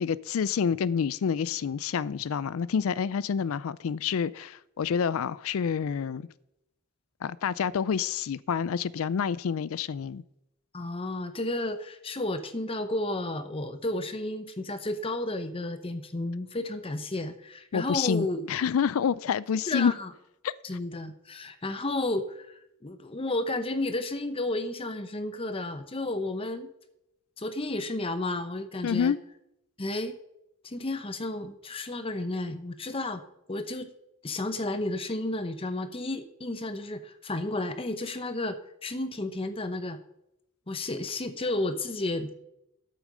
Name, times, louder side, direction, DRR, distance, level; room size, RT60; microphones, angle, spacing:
voice 1, 0.0-6.3 7.2-10.2 17.7-19.9 20.4-20.5 28.8-29.2, left 7 dB, 70° left, 0.4 m, -28 dB
voice 2, 10.7-18.5 19.7-20.1 20.6-26.7 27.4-29.1 29.8-30.2 30.6-33.2 33.5-33.9 34.2-40.0 40.7-42.4, left 2 dB, 25° left, 0.7 m, -32 dB
8.8 x 8.2 x 6.5 m
head